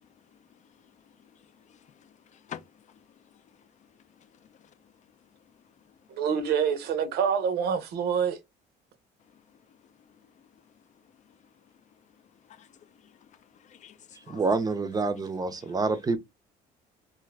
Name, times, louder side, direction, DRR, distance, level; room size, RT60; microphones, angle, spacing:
voice 1, 0.0-3.3 3.6-3.9 4.2-4.9 9.5-9.9 10.2-10.5 12.4-14.4 15.6-15.8, left 9 dB, 45° left, 0.4 m, -51 dB
voice 2, 6.1-8.4, right 7 dB, 75° right, 0.7 m, -26 dB
voice 3, 14.3-16.2, right 3 dB, 20° right, 0.5 m, -27 dB
2.6 x 2.4 x 3.2 m
cardioid pair, 110°, 17 cm